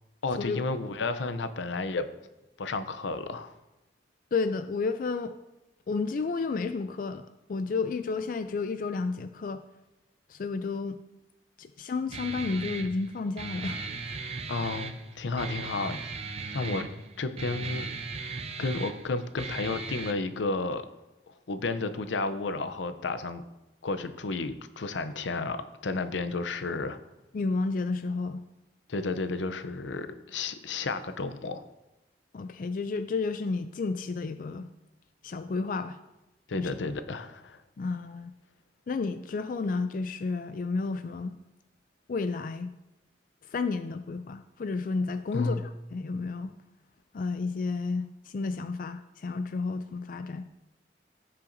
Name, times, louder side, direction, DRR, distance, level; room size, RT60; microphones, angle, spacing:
voice 1, 0.2-2.1 2.6-3.5 14.5-16.2 16.5-16.9 17.2-17.9 18.6-20.8 21.3-23.4 23.8-27.0 28.9-31.6 36.5-37.6 45.3-45.7, left 3 dB, 85° left, 11 dB, 0.6 m, -32 dB
voice 2, 4.3-5.3 5.9-9.6 10.3-11.0 11.6-14.2 27.3-28.4 32.3-34.7 35.2-36.0 36.5-36.7 37.8-38.3 38.9-41.3 42.1-42.7 43.4-46.5 47.1-50.5, left 4 dB, 50° left, 9 dB, 0.3 m, -31 dB
Guitar, 12.1-20.1, right 4 dB, 35° right, 0.5 m, -37 dB
15.0 x 5.7 x 2.6 m, 0.98 s
head